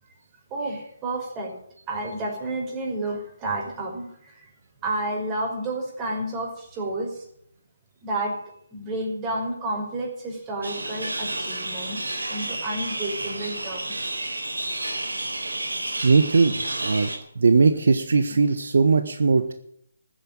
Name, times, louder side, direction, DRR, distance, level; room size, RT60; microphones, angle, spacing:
voice 1, 0.5-1.5 1.9-4.5 4.8-7.3 8.0-8.4 8.7-12.0 12.3-14.1 18.3-18.4, right 2 dB, 20° right, 0 dB, 5.4 m, -30 dB
sound 1, 10.6-17.2, right 2 dB, 85° right, 4.2 m, -31 dB
voice 2, 16.0-17.1 17.3-19.5, right 4 dB, 65° right, 9 dB, 1.4 m, -19 dB
14.0 x 9.8 x 9.0 m, 0.69 s
figure-of-eight pair, 150°, 0 cm